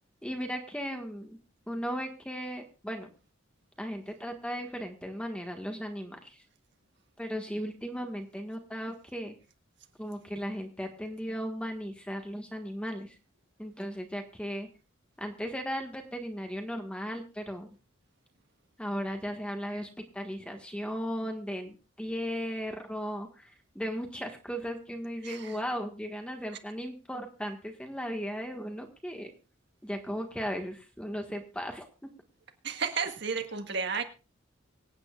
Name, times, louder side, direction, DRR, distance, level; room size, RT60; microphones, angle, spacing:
voice 1, 0.2-1.4 1.7-3.1 3.8-6.4 7.2-9.3 10.0-13.1 13.6-14.7 15.2-17.7 18.8-29.3 29.8-32.1, equal, 5° left, 4 dB, 1.5 m, -36 dB
voice 2, 25.2-25.6 32.6-34.0, right 5 dB, 55° right, 5 dB, 1.7 m, -32 dB
25.0 x 9.0 x 2.4 m, 0.32 s
head